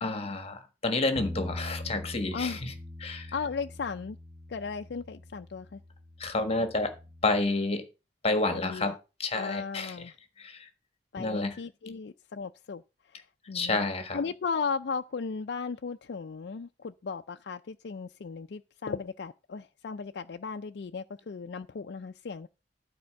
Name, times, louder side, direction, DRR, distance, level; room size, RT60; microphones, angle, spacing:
voice 1, 0.0-2.7 3.0-3.3 6.2-6.9 7.2-7.8 8.2-9.9 10.4-10.7 11.2-11.5 13.5-14.2, left 2 dB, 35° left, 1.4 m, -29 dB
Bass guitar, 1.2-7.4, left 1 dB, 15° right, 1.8 m, -43 dB
voice 2, 3.3-4.2 4.5-5.8 8.5-9.0 9.3-10.1 11.1-12.8 13.1-13.9 14.1-22.5, left 5 dB, 70° left, 0.4 m, -36 dB
12.0 x 4.3 x 6.3 m
head